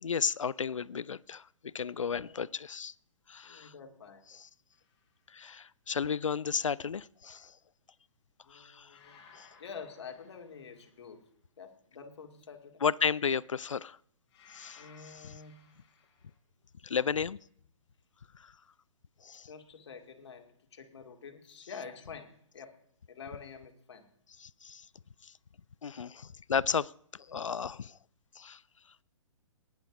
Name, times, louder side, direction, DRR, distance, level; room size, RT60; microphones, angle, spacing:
voice 1, 0.0-2.9 3.3-3.7 4.3-4.5 5.3-7.5 8.5-9.0 9.3-9.5 12.8-14.0 14.5-15.3 16.8-17.4 18.3-18.5 19.2-19.5 24.4-24.9 25.2-25.3 25.8-28.0 28.4-28.6, left 6 dB, 80° left, 22 dB, 0.5 m, -34 dB
voice 2, 2.0-2.4 3.4-4.3 8.4-9.2 9.6-11.3 11.6-12.8 14.8-15.8 19.4-22.7 23.1-24.1, left 6 dB, 60° left, 5 dB, 2.3 m, -48 dB
sound 1, 4.7-5.1 8.9-11.1 14.3-16.4, left 6 dB, 25° left, 3.8 m, -59 dB
16.5 x 10.5 x 4.9 m, 0.65 s
figure-of-eight pair, 125°, 16 cm